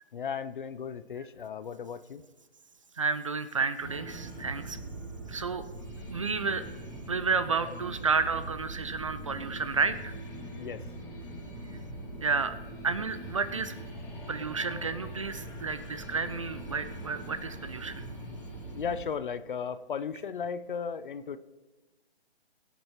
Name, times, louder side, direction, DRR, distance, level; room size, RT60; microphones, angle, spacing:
voice 1, 0.1-2.2 10.6-10.8 18.7-21.4, left 6 dB, 50° left, 14 dB, 0.7 m, -35 dB
voice 2, 3.0-4.8 5.3-5.6 6.1-6.7 7.1-10.1 12.2-12.6 12.8-13.8 14.3-18.0, right 4 dB, 30° right, 12 dB, 0.5 m, -31 dB
sound 1, 3.8-19.1, right 1 dB, 10° left, 2.1 m, -42 dB
22.5 x 8.5 x 3.1 m, 1.2 s
hypercardioid pair, 160°, 33 cm